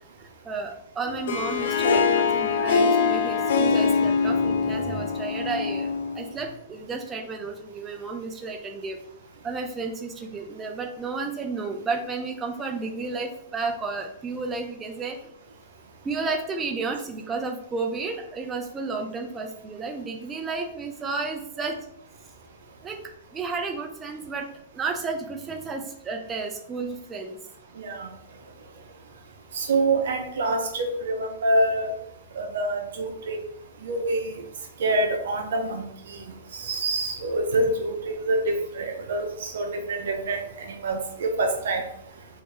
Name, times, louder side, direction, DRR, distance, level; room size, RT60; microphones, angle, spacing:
voice 1, 0.2-9.0 9.4-15.2 16.0-21.8 22.8-23.0 23.3-24.5 24.7-27.4, right 4 dB, 15° right, 3 dB, 0.3 m, -32 dB
Harp, 1.1-6.3, left 5 dB, 80° left, 0.6 m, -23 dB
voice 2, 27.8-28.1 29.5-31.9 32.4-33.4 33.8-34.3 34.8-35.8 36.6-40.4 40.8-41.8, right 2 dB, 75° right, 3 dB, 0.8 m, -26 dB
3.5 x 2.6 x 3.2 m, 0.76 s
hypercardioid pair, 150°, 0 cm